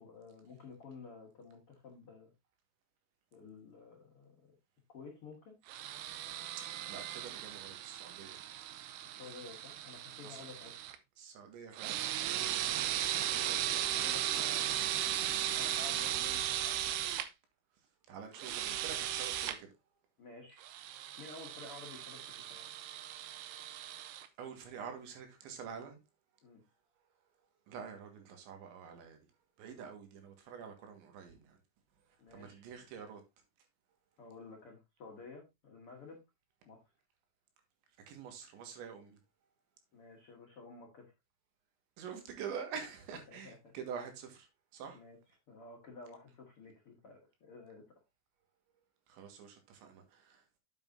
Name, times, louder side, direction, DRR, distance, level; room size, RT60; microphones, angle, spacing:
voice 1, 0.0-2.3 3.3-4.5 4.9-5.5 9.2-10.7 12.6-14.8 15.5-17.1 20.2-20.6 21.2-22.2 22.5-22.7 26.4-26.6 32.2-32.6 34.2-36.2 36.6-36.8 39.9-41.1 43.3-43.7 44.9-45.2 45.5-47.8, left 4 dB, 65° left, 1.4 m, -52 dB
sound 1, 5.7-11.0 11.7-17.3 18.3-19.6 20.6-24.3, right 12 dB, 90° right, 2.4 m, -37 dB
voice 2, 6.6-8.4 10.1-10.5 11.2-12.5 18.1-19.7 24.4-26.0 27.7-29.3 29.6-31.6 32.3-33.2 38.1-39.2 42.0-45.0 49.1-50.4, right 7 dB, 70° right, 3.7 m, -47 dB
9.3 x 8.3 x 2.7 m
omnidirectional pair, 5.8 m